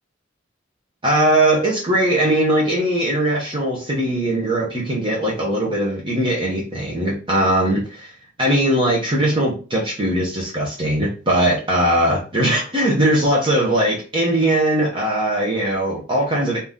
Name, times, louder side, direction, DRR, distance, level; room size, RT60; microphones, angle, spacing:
voice 1, 1.0-8.1 8.4-16.6, right 1 dB, 25° right, -3 dB, 1.0 m, -20 dB
3.9 x 2.8 x 3.6 m, 0.34 s
head